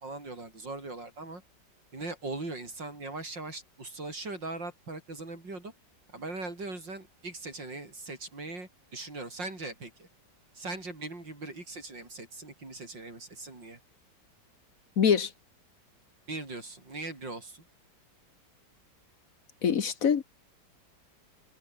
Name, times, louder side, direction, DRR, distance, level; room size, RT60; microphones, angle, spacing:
voice 1, 0.0-1.4 1.9-5.7 6.1-10.1 10.5-13.8 16.3-17.7, right 2 dB, 90° right, 6.9 m, -40 dB
voice 2, 15.0-15.3 19.6-20.2, left 7 dB, 55° left, 1.5 m, -24 dB
omnidirectional pair, 1.9 m